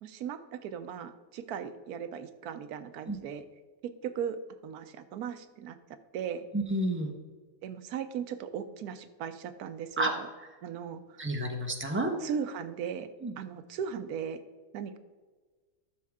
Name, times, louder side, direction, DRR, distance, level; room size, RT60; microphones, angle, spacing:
voice 1, 0.0-3.4 3.8-4.4 4.6-5.8 6.1-6.5 7.6-10.3 10.6-11.2 12.2-13.1 13.4-14.4 14.7-15.0, right 8 dB, 80° right, 11 dB, 1.1 m, -37 dB
voice 2, 6.5-7.1 10.0-10.1 11.2-12.1 13.2-13.3, right 1 dB, 10° right, 3 dB, 0.8 m, -30 dB
12.0 x 6.4 x 3.6 m, 1.4 s
omnidirectional pair, 1.6 m